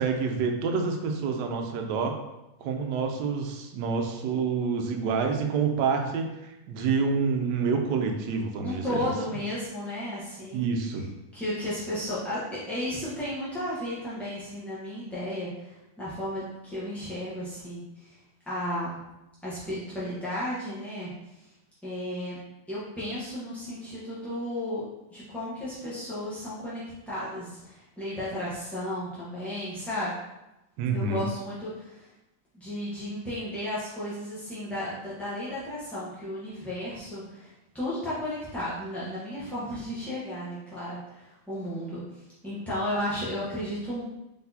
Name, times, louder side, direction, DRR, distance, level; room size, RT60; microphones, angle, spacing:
voice 1, 0.0-2.2 2.6-9.1 10.5-11.1 30.8-31.2, right 5 dB, 85° right, 3 dB, 1.2 m, -28 dB
voice 2, 8.6-10.7 11.3-18.2 18.4-19.0 19.4-21.5 21.8-22.4 22.7-30.1 30.9-32.1 32.5-44.0, left 1 dB, ahead, -11 dB, 0.5 m, -34 dB
4.0 x 3.7 x 2.7 m, 0.94 s
omnidirectional pair, 1.8 m